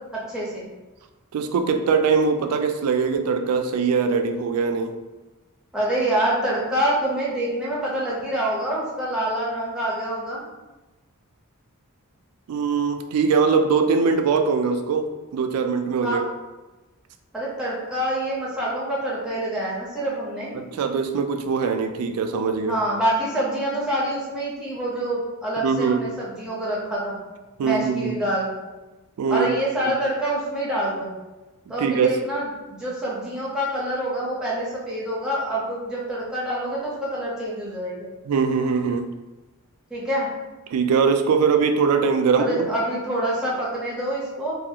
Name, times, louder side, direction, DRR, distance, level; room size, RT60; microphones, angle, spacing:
voice 1, 0.3-0.6 5.7-10.4 16.0-16.2 17.3-20.6 22.6-27.2 27.6-28.5 29.3-31.1 31.7-38.1 39.9-40.3 42.3-44.5, right 1 dB, 5° right, -7 dB, 0.7 m, -26 dB
voice 2, 1.3-5.0 12.5-16.3 20.5-22.8 25.6-26.0 27.6-28.2 29.2-29.5 31.8-32.1 38.3-39.1 40.7-42.7, right 5 dB, 90° right, 8 dB, 0.3 m, -22 dB
2.6 x 2.4 x 2.7 m, 1.1 s
head